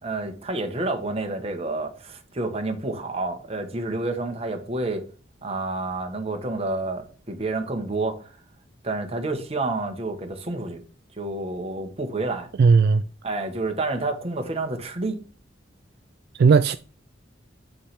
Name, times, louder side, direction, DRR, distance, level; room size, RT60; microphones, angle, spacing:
voice 1, 0.0-5.1 5.4-8.3 8.8-10.8 11.1-12.5 13.2-15.2, right 2 dB, 30° right, 1.1 m, -29 dB
voice 2, 12.6-13.0 16.4-16.8, right 5 dB, 55° right, 0.3 m, -16 dB
8.6 x 3.3 x 5.7 m
head